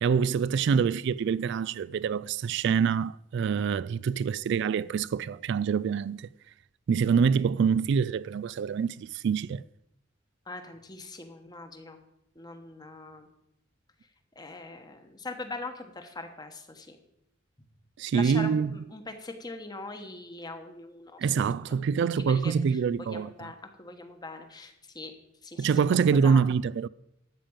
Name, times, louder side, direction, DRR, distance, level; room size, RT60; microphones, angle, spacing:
voice 1, 0.0-6.3 6.9-9.6 18.0-18.7 21.2-23.3 25.6-26.9, right 6 dB, 65° right, 0.3 m, -25 dB
voice 2, 10.5-12.0 12.3-13.3 14.3-17.0 18.1-21.3 21.8-25.1 25.4-25.7 26.2-26.5, left 2 dB, 20° left, 1.3 m, -42 dB
12.5 x 5.2 x 8.8 m
head